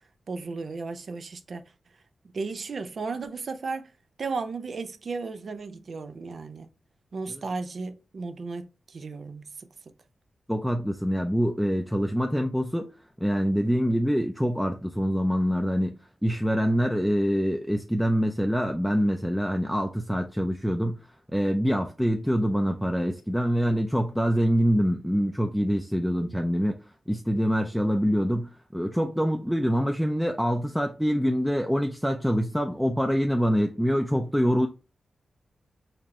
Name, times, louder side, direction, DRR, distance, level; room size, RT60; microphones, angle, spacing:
voice 1, 0.3-1.6 2.2-3.9 4.2-6.7 7.1-9.7, right 4 dB, 65° right, 0.5 m, -35 dB
voice 2, 10.5-12.9 13.2-21.0 21.3-26.8 27.1-34.7, equal, ahead, 0.5 m, -25 dB
4.2 x 2.6 x 3.1 m
cardioid pair, 70°, 0 cm